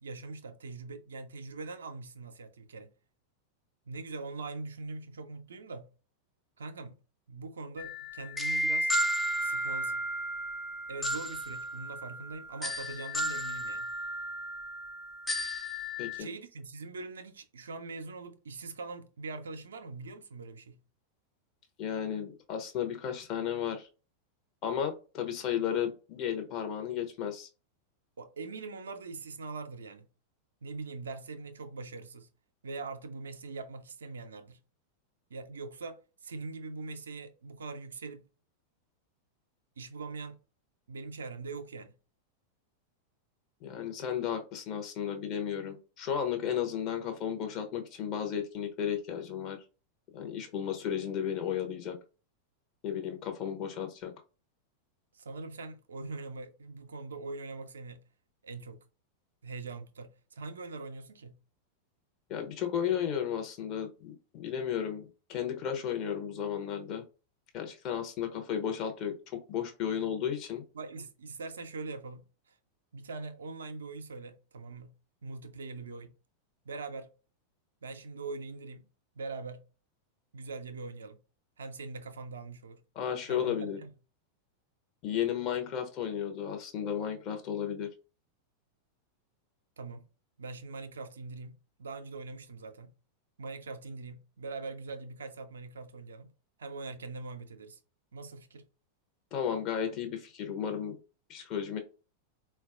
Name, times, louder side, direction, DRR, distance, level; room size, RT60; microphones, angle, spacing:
voice 1, 0.0-2.9 3.9-5.9 6.6-6.9 7.3-8.9 9.4-10.0 10.9-13.9 16.2-20.8 28.2-30.1 30.6-32.3 32.6-34.6 35.3-38.2 39.8-40.4 40.9-41.9 55.1-58.0 58.4-58.8 59.4-61.4 69.9-70.0 70.7-72.5 72.9-74.9 75.2-76.1 76.6-77.1 77.8-78.8 79.2-79.6 80.3-81.2 81.6-82.8 83.3-83.9 89.8-90.0 90.4-92.9 93.4-96.3 96.6-97.8 98.1-98.7, right 3 dB, 70° right, 0.4 m, -42 dB
sound 1, 7.8-16.2, equal, 5° left, 0.4 m, -33 dB
voice 2, 21.8-23.9 24.6-27.5 43.6-49.6 50.1-52.0 52.8-54.1 62.3-67.0 67.5-70.6 83.0-83.8 85.0-87.9 99.3-101.0 101.3-101.8, left 8 dB, 40° left, 0.7 m, -34 dB
3.9 x 2.3 x 2.4 m
figure-of-eight pair, 90°, 0 cm